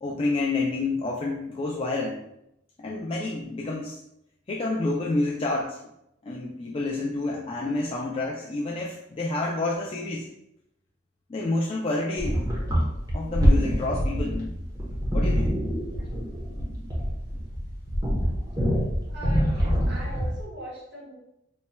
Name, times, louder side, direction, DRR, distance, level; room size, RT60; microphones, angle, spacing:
voice 1, 0.0-2.2 2.8-4.0 4.5-5.8 6.2-10.3 11.3-12.4 12.7-12.8 13.1-14.6 15.1-15.5, left 2 dB, 30° left, -3 dB, 0.4 m, -29 dB
sound 1, 12.2-20.4, equal, 20° right, 1.0 m, -25 dB
voice 2, 15.9-16.3 19.1-21.1, right 1 dB, 60° right, -4 dB, 1.3 m, -41 dB
4.2 x 3.1 x 2.2 m, 0.81 s
head